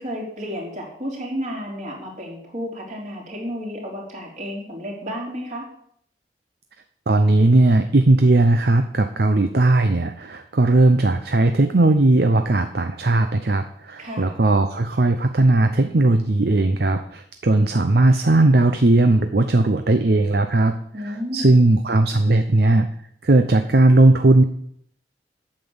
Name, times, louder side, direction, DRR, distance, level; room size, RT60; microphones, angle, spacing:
voice 1, 0.0-5.6 14.0-14.3 20.9-21.5, equal, 40° right, -1 dB, 3.3 m, -32 dB
voice 2, 7.1-22.9 23.2-24.4, right 2 dB, 55° right, 8 dB, 0.7 m, -17 dB
8.7 x 7.9 x 7.2 m, 0.68 s
head